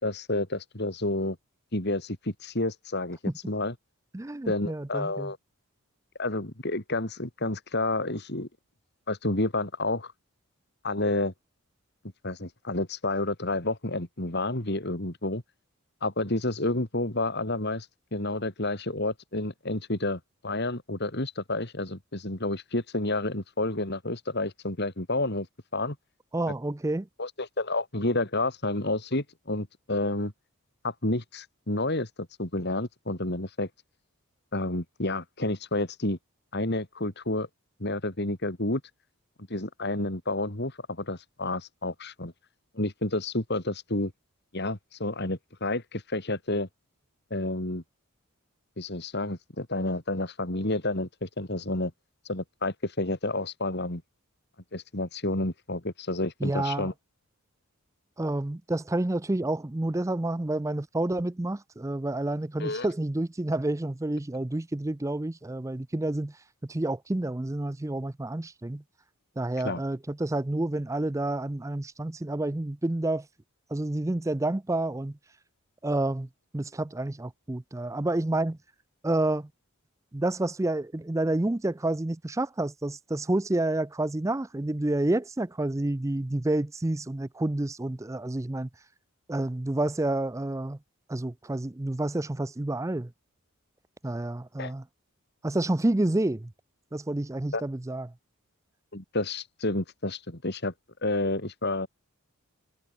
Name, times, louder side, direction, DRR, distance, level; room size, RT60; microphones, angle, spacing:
voice 1, 0.0-1.4 1.7-3.7 4.4-5.4 6.2-8.5 9.1-10.1 10.8-11.3 12.2-15.4 16.0-25.5 25.7-26.0 27.2-30.3 30.8-33.7 34.5-36.2 36.5-37.5 37.8-38.8 39.5-42.3 42.7-44.1 44.5-46.7 47.3-47.8 48.8-51.9 52.2-54.0 54.7-56.9 62.6-62.9 69.6-69.8 94.6-94.7 97.5-97.6 98.9-100.7 101.0-101.9, left 2 dB, 50° left, 2.9 m, -30 dB
voice 2, 4.1-5.3 26.3-27.1 56.4-56.9 58.2-66.4 66.6-68.8 69.4-73.3 73.7-75.2 75.8-76.3 76.5-78.6 79.0-79.5 80.1-88.7 89.3-90.8 91.1-93.1 94.0-94.8 95.4-96.5 96.9-98.1, right 2 dB, 15° right, 0.4 m, -29 dB
head